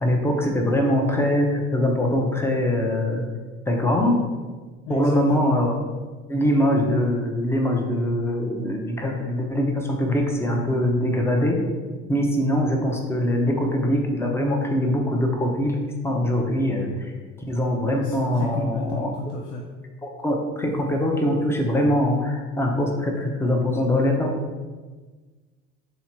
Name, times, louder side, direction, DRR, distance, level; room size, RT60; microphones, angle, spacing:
voice 1, 0.0-3.2 3.7-4.2 4.9-5.8 6.3-11.6 12.1-15.8 16.0-17.1 17.5-19.1 20.0-24.3, left 1 dB, 5° left, 1 dB, 0.8 m, -22 dB
voice 2, 4.9-5.5 18.0-19.7, left 1 dB, 80° left, 0 dB, 0.6 m, -31 dB
3.5 x 2.9 x 4.6 m, 1.4 s
supercardioid pair, 80°, 35 cm